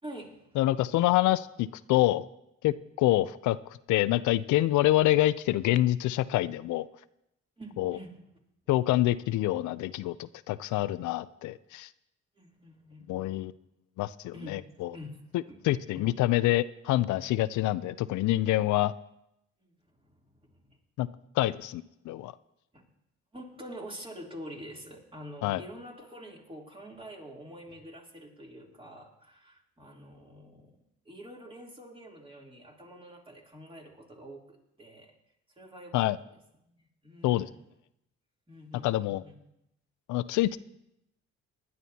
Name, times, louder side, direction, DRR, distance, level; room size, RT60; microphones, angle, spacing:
voice 1, 0.0-0.6 7.6-8.2 12.4-13.3 14.3-14.6 14.9-15.2 15.5-15.6 15.9-16.0 19.6-20.8 22.7-22.9 23.3-30.8 31.0-35.1 35.5-37.6 38.5-39.3, equal, 20° right, -1 dB, 3.1 m, -47 dB
voice 2, 0.6-2.3 2.6-3.6 3.9-6.9 7.8-8.0 8.7-11.9 13.1-13.5 14.0-14.9 15.6-18.9 21.0-21.1 21.4-22.3 25.4-25.6 35.9-36.2 37.2-37.5 38.8-39.2 40.1-40.6, left 15 dB, 85° left, 16 dB, 0.5 m, -26 dB
19.5 x 11.0 x 2.8 m, 0.82 s
cardioid pair, 85°, 29 cm